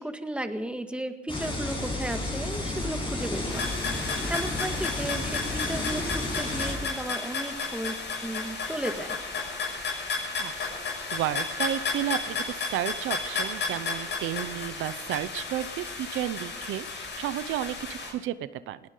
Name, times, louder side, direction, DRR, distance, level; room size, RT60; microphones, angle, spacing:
voice 1, 0.0-9.2, right 1 dB, 5° right, 6 dB, 1.8 m, -35 dB
sound 1, 1.3-6.8, left 2 dB, 25° left, 7.7 m, -32 dB
sound 2, 3.5-18.1, left 4 dB, 65° left, 6.7 m, -33 dB
voice 2, 10.4-18.8, right 12 dB, 90° right, 14 dB, 0.7 m, -32 dB
20.5 x 17.5 x 3.9 m, 1.0 s
cardioid pair, 90°, 20 cm